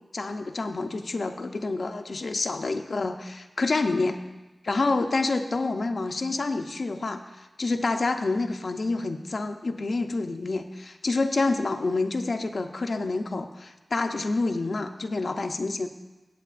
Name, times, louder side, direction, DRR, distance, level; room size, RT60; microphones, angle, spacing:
voice 1, 0.1-4.2 4.6-15.9, left 3 dB, 65° left, 6 dB, 0.6 m, -28 dB
16.5 x 7.7 x 2.5 m, 1.1 s
wide cardioid pair, 65°, 0 cm